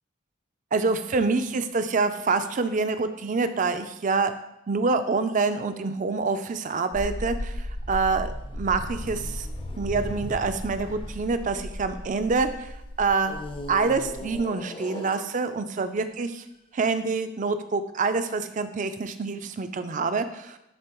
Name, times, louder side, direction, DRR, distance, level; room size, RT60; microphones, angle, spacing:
voice 1, 0.7-4.3 4.7-7.5 7.9-9.5 9.8-12.5 13.0-13.3 13.7-16.4 16.7-20.6, right 4 dB, 35° right, 9 dB, 0.4 m, -26 dB
sound 1, 6.9-14.4, left 1 dB, 85° left, 1.6 m, -36 dB
sound 2, 7.8-12.5 13.2-15.7 16.4-16.6, left 1 dB, 25° left, 0.5 m, -41 dB
11.0 x 3.8 x 3.0 m, 0.88 s
head